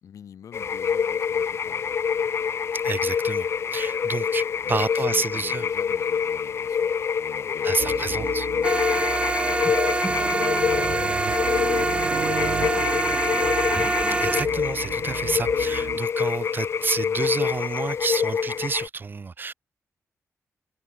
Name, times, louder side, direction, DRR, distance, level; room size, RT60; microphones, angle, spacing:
voice 1, 0.0-2.0 4.6-6.9 7.2-13.5, left 8 dB, 85° left, 4.0 m, -46 dB
sound 1, 0.5-18.9, left 7 dB, 55° left, 0.4 m, -26 dB
voice 2, 2.8-5.6 7.6-8.5 14.2-19.5, right 4 dB, 40° right, 1.0 m, -29 dB
sound 2, 7.8-16.0, right 9 dB, 90° right, 1.6 m, -34 dB
sound 3, 8.6-14.5, right 3 dB, 20° right, 0.5 m, -25 dB
wide cardioid pair, 110°, 5 cm